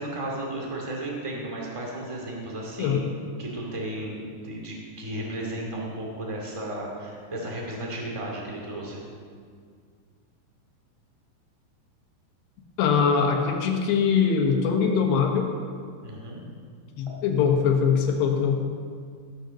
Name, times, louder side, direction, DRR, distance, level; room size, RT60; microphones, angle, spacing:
voice 1, 0.0-3.0 3.4-9.0 16.0-16.4, right 1 dB, 15° right, -2 dB, 1.2 m, -34 dB
voice 2, 12.8-15.5 17.0-18.6, left 6 dB, 80° left, 2 dB, 3.5 m, -22 dB
16.0 x 6.6 x 6.4 m, 2.1 s
omnidirectional pair, 4.8 m